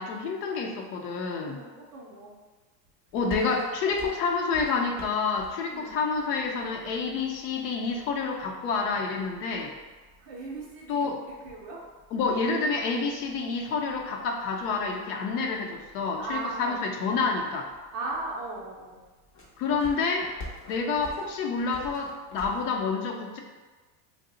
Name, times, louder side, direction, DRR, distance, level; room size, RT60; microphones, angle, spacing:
voice 1, 0.0-1.6 3.1-9.7 10.9-11.2 12.1-17.7 19.6-20.3 20.7-23.4, left 4 dB, 65° left, 1 dB, 0.6 m, -28 dB
voice 2, 1.4-2.3 5.7-6.0 10.2-11.8 16.2-16.8 17.9-19.0 21.0-21.1, right 3 dB, 35° right, -3 dB, 0.4 m, -38 dB
sound 1, 3.0-22.9, left 1 dB, 25° left, 0.5 m, -50 dB
2.7 x 2.0 x 3.7 m, 1.3 s
supercardioid pair, 150°, 49 cm